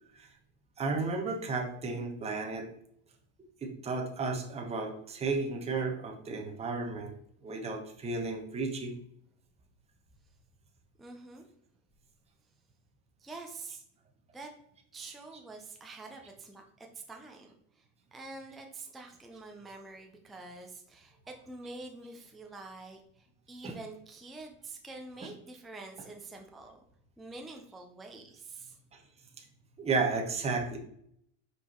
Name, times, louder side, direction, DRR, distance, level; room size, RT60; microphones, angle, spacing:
voice 1, 0.8-2.7 3.6-7.1 7.4-8.9 29.8-30.8, right 4 dB, 15° right, 2 dB, 1.0 m, -33 dB
voice 2, 11.0-11.5 13.2-13.8 14.3-14.5 14.9-17.8 18.1-26.8 27.2-28.8, right 3 dB, ahead, 2 dB, 0.4 m, -46 dB
5.4 x 4.8 x 4.3 m, 0.70 s
supercardioid pair, 145°, 38 cm